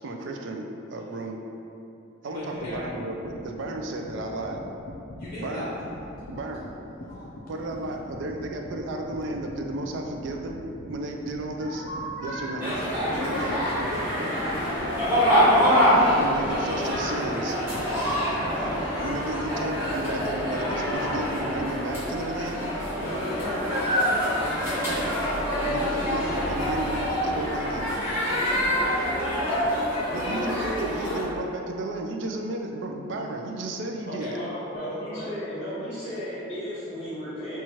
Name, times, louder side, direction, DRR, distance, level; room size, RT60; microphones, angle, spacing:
voice 1, 0.0-1.4 2.2-4.6 5.4-5.8 6.3-6.7 7.5-10.6 10.9-11.8 12.2-12.7 16.2-17.6 19.0-22.6 25.7-28.0 30.1-34.4, right 2 dB, 65° right, 2 dB, 0.3 m, -33 dB
voice 2, 2.2-2.8 5.2-5.7 6.3-6.6 7.1-7.4 11.6-14.9 18.2-18.5 22.3-22.6 23.0-26.6 28.1-29.4 34.0-35.3 35.9-36.4, left 1 dB, 45° left, -9 dB, 1.1 m, -37 dB
sound 1, 2.4-20.9, left 1 dB, 65° left, 0.4 m, -42 dB
sound 2, 12.6-31.2, equal, 10° right, 0.9 m, -25 dB
sound 3, 12.6-17.8 18.1-18.2 18.5-20.2, equal, 45° right, 0.9 m, -41 dB
voice 3, 34.7-37.6, equal, 30° left, -15 dB, 0.7 m, -35 dB
4.2 x 2.3 x 2.9 m, 2.8 s
head